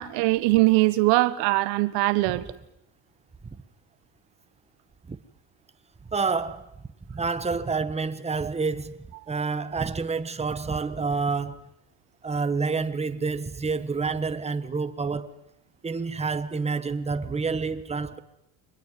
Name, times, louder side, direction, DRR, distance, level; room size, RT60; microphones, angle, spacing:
voice 1, 0.0-2.5, right 21 dB, 85° right, 1.5 m, -21 dB
voice 2, 6.1-6.7 7.1-9.0 9.3-11.6 12.2-15.4 15.8-18.2, right 4 dB, 15° right, 1.4 m, -28 dB
24.0 x 20.5 x 9.3 m
cardioid pair, 105°, 39 cm